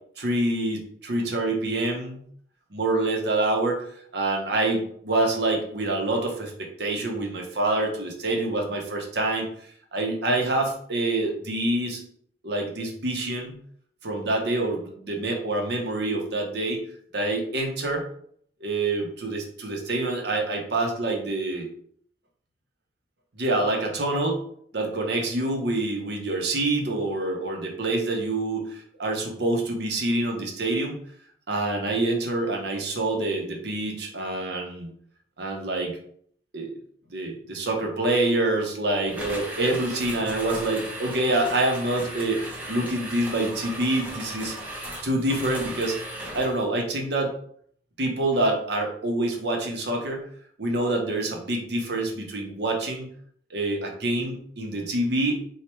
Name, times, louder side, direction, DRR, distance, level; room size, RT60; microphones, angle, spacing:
voice 1, 0.2-2.2 2.7-9.5 9.9-12.0 12.4-13.6 14.0-16.8 17.1-18.0 18.6-21.7 23.4-24.4 24.7-31.0 31.5-34.9 35.4-36.0 36.5-36.7 37.1-44.5 45.0-46.0 46.3-47.3 48.0-50.2 50.6-53.1 53.5-55.4, right 2 dB, 65° right, 1 dB, 0.9 m, -26 dB
sound 1, 39.1-46.6, right 1 dB, 10° right, 0.8 m, -36 dB
3.2 x 2.4 x 4.4 m, 0.62 s
head